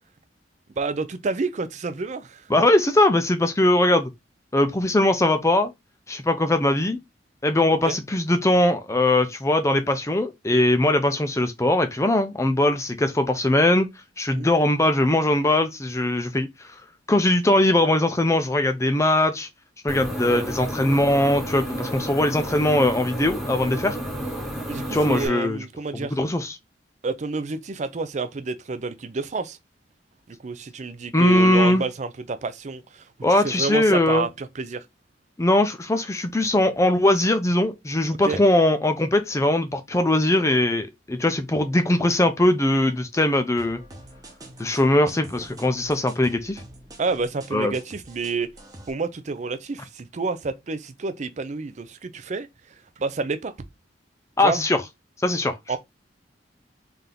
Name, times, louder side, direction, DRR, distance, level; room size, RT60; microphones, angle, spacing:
voice 1, 0.8-2.5 7.8-8.0 14.3-14.5 20.3-20.5 24.7-26.2 27.0-29.6 30.3-34.8 38.2-38.4 47.0-48.5 48.9-53.5 54.4-54.6 55.7-55.8, right 4 dB, 40° right, 0.4 m, -29 dB
voice 2, 2.5-4.1 4.5-5.7 6.1-7.0 7.4-13.9 14.2-16.5 17.1-19.5 19.8-24.0 24.9-25.6 25.9-26.5 31.1-31.8 33.2-34.3 35.4-43.8 44.6-46.6 47.5-47.7 54.4-54.8 55.2-55.8, left 1 dB, 15° left, 0.5 m, -20 dB
sound 1, 19.9-25.3, right 1 dB, ahead, 1.0 m, -31 dB
sound 2, 43.6-48.9, right 1 dB, 20° right, 1.0 m, -46 dB
3.4 x 2.8 x 3.8 m
head